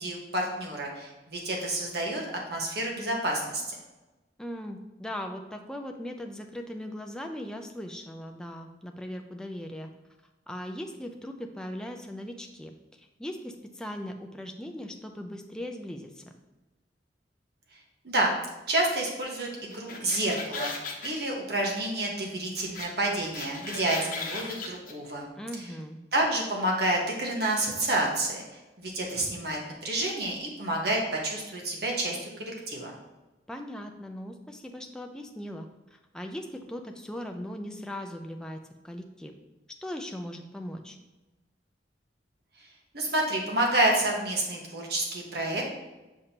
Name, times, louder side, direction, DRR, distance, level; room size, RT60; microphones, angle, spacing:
voice 1, 0.0-2.2 2.5-3.8 18.0-18.3 18.7-25.3 25.6-25.7 26.1-28.4 28.8-32.9 42.9-45.7, right 1 dB, 60° right, -1 dB, 1.4 m, -29 dB
voice 2, 4.4-9.9 10.5-16.2 25.4-26.0 33.5-38.6 38.8-39.3 39.8-41.0, equal, 5° left, 3 dB, 0.4 m, -39 dB
sound 1, 19.7-21.1 22.7-22.9 23.1-24.9, left 4 dB, 50° left, 0.9 m, -36 dB
7.2 x 5.1 x 2.9 m, 1.1 s
head